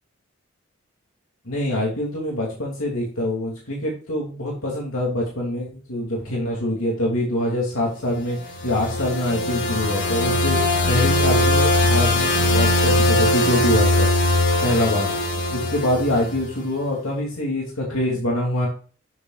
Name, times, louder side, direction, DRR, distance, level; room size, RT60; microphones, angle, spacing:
voice 1, 1.5-14.1 14.6-15.1 15.5-18.7, left 1 dB, 80° left, -3 dB, 2.9 m, -24 dB
sound 1, 8.4-16.6, left 1 dB, 55° left, 1.7 m, -20 dB
12.5 x 7.2 x 2.5 m, 0.41 s
head